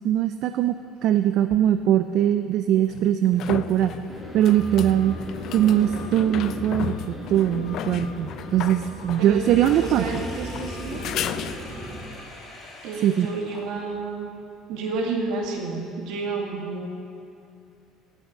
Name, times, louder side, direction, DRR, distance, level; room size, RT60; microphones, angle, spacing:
voice 1, 0.0-0.7 1.0-4.0 4.3-5.2 5.5-10.2 13.0-13.3, right 11 dB, 55° right, 9 dB, 0.4 m, -21 dB
sound 1, 1.5-1.6 2.9-12.0 15.4-15.5, left 10 dB, 55° left, 0.4 m, -35 dB
sound 2, 4.1-12.1, equal, 5° right, 2.4 m, -36 dB
Sink (filling or washing), 9.1-14.0, left 2 dB, 25° left, 2.4 m, -44 dB
voice 2, 9.7-11.1 12.8-14.3 14.7-16.9, right 3 dB, 75° right, 1 dB, 2.2 m, -30 dB
17.0 x 6.4 x 6.4 m, 2.5 s
cardioid pair, 135°, 0 cm